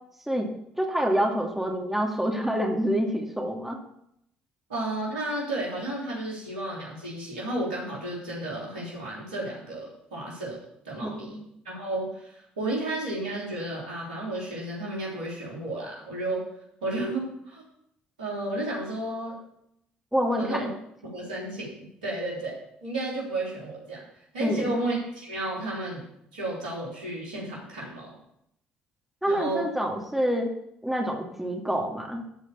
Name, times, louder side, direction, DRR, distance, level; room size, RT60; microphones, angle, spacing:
voice 1, 0.8-3.8 11.0-11.4 20.1-20.7 24.4-24.7 29.2-30.5 30.8-32.2, equal, 5° right, 0 dB, 2.5 m, -27 dB
voice 2, 4.7-10.6 10.9-11.4 11.7-16.4 16.8-17.6 18.2-19.4 20.4-20.7 21.0-24.0 24.3-26.0 26.3-28.2 29.3-29.6, right 2 dB, 80° right, -4 dB, 3.5 m, -32 dB
12.5 x 5.0 x 7.0 m, 0.75 s
figure-of-eight pair, 50°, 5 cm